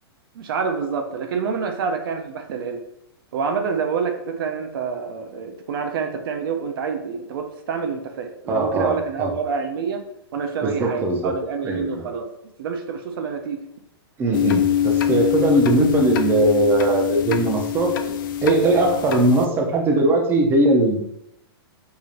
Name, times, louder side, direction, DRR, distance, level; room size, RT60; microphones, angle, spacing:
voice 1, 0.3-2.8 3.3-10.0 10.3-12.3 12.6-13.6, right 6 dB, 60° right, 5 dB, 0.5 m, -27 dB
voice 2, 8.5-9.3 10.6-11.3 11.6-12.0 14.2-17.9 18.4-21.0, right 2 dB, 15° right, 1 dB, 0.5 m, -20 dB
sound 1, 14.3-19.5, left 10 dB, 55° left, 0.4 m, -24 dB
4.7 x 2.7 x 2.5 m, 0.80 s
hypercardioid pair, 150°, 13 cm